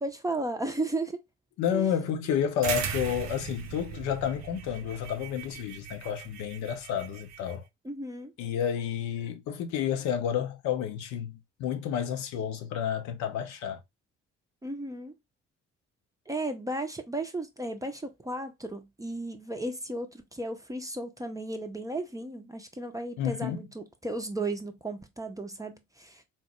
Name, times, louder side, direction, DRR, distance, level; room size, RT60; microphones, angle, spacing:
voice 1, 0.0-1.2 1.7-1.9 7.8-8.3 14.6-15.1 16.3-26.2, right 2 dB, 10° right, 0.6 m, -35 dB
voice 2, 1.6-7.6 8.4-13.8 23.2-23.6, left 8 dB, 55° left, 0.6 m, -30 dB
sound 1, 2.6-7.5, right 8 dB, 50° right, 0.6 m, -38 dB
4.2 x 2.0 x 2.9 m
figure-of-eight pair, 40°, 34 cm